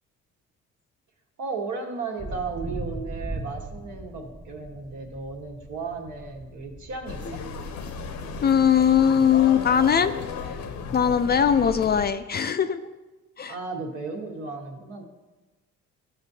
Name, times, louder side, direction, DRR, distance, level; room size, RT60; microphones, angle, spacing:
voice 1, 1.4-7.4 13.5-15.0, right 4 dB, 75° right, 1 dB, 1.4 m, -35 dB
sound 1, 2.2-9.8, right 2 dB, 30° right, 1.3 m, -40 dB
sound 2, 7.1-12.1, left 5 dB, 70° left, 0.8 m, -35 dB
voice 2, 8.4-10.1 10.4-10.6 10.9-12.9 13.4-13.6, left 8 dB, 35° left, 11 dB, 0.4 m, -20 dB
13.0 x 5.9 x 2.8 m, 1.2 s
cardioid pair, 90°, 30 cm